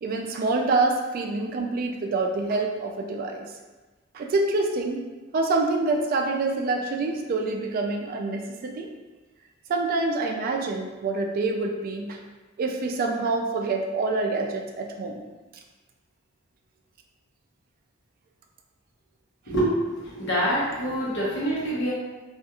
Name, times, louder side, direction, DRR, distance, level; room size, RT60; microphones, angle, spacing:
voice 1, 0.0-3.5 4.1-5.0 5.3-8.9 9.7-12.2 12.6-15.3, right 3 dB, 45° right, 2 dB, 0.3 m, -26 dB
voice 2, 19.4-21.9, right 1 dB, 60° left, -6 dB, 0.9 m, -26 dB
2.8 x 2.4 x 2.3 m, 1.3 s
head